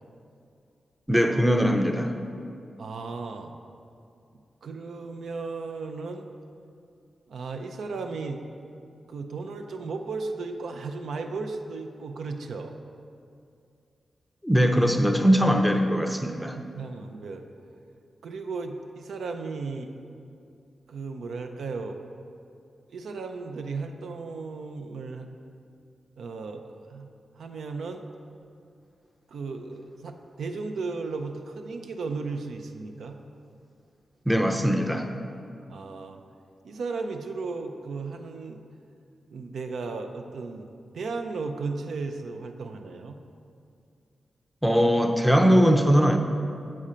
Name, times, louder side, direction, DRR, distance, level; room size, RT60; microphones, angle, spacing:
voice 1, 1.1-2.1 14.4-16.6 34.3-35.1 44.6-46.2, equal, ahead, 4 dB, 0.5 m, -21 dB
voice 2, 2.8-3.5 4.6-6.3 7.3-8.4 9.1-12.8 16.6-17.4 18.2-19.9 20.9-22.0 22.9-25.3 26.2-26.6 26.9-27.1 27.4-28.0 29.3-33.2 35.7-36.2 36.6-38.6 39.3-40.7 40.9-43.2, right 4 dB, 80° right, 5 dB, 0.4 m, -35 dB
7.4 x 4.3 x 5.0 m, 2.5 s
cardioid pair, 85°, 0 cm